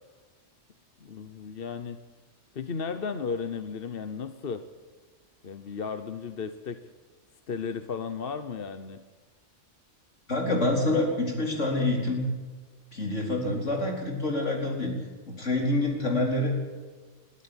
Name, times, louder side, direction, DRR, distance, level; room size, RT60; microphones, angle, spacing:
voice 1, 1.0-2.0 2.5-4.6 5.4-6.8 7.5-9.0, left 5 dB, 50° left, 10 dB, 1.1 m, -34 dB
voice 2, 10.3-12.3 12.9-14.9 15.3-16.5, left 2 dB, 75° left, 0 dB, 4.7 m, -27 dB
22.5 x 13.0 x 9.0 m, 1.4 s
omnidirectional pair, 1.3 m